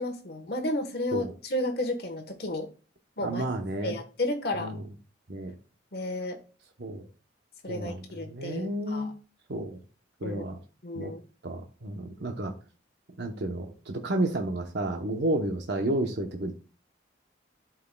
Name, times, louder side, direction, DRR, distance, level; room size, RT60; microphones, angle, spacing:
voice 1, 0.0-2.7 3.2-3.4 3.8-4.8 5.9-6.4 7.6-9.1 10.2-10.4 10.8-11.2, left 1 dB, 55° left, 1.2 m, -32 dB
voice 2, 3.2-4.0 4.5-4.8 5.3-5.5 6.8-7.1 7.7-9.2 9.5-9.8 10.2-10.6 10.9-11.1 11.4-12.5 13.2-16.6, right 1 dB, 60° right, 0.8 m, -31 dB
11.5 x 4.7 x 2.2 m
head